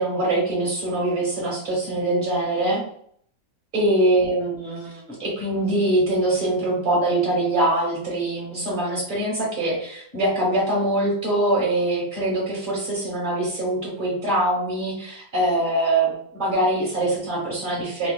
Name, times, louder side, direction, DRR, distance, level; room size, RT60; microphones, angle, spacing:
voice 1, 0.0-2.8 3.7-18.1, right 1 dB, 25° right, -5 dB, 1.5 m, -23 dB
4.4 x 2.2 x 2.3 m, 0.62 s
omnidirectional pair, 2.1 m